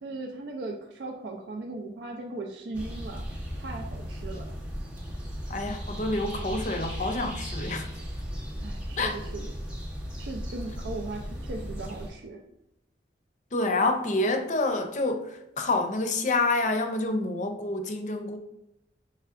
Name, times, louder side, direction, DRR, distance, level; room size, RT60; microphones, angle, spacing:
voice 1, 0.0-3.2 3.6-4.6 8.3-9.5 10.2-12.4, right 2 dB, 75° right, 1 dB, 0.4 m, -38 dB
sound 1, 2.7-12.1, equal, 10° right, 0.8 m, -36 dB
voice 2, 5.5-7.9 9.0-9.2 13.5-18.4, left 2 dB, 45° left, 5 dB, 0.5 m, -28 dB
5.6 x 3.2 x 2.5 m, 0.86 s
head